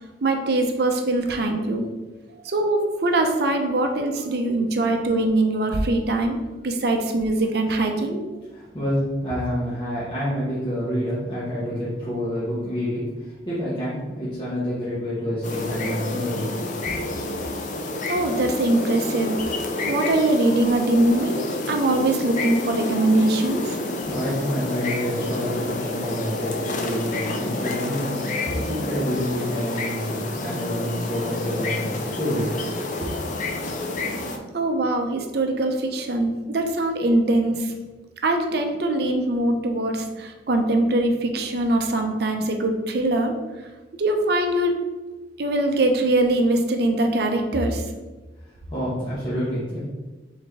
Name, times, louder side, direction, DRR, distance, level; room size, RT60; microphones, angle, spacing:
voice 1, 0.2-1.9 2.4-6.4 6.6-8.2 18.1-19.4 19.8-21.4 21.7-23.8 34.5-37.7 38.2-43.4 44.0-44.8 45.4-47.8, right 2 dB, 65° right, 4 dB, 0.6 m, -22 dB
voice 2, 8.5-16.6 16.9-17.0 24.0-31.9 32.2-32.5 33.0-33.1 48.7-49.8, equal, 30° left, -10 dB, 1.1 m, -28 dB
sound 1, 15.4-34.4, left 2 dB, 45° left, 0.5 m, -29 dB
4.0 x 3.4 x 3.5 m, 1.2 s
head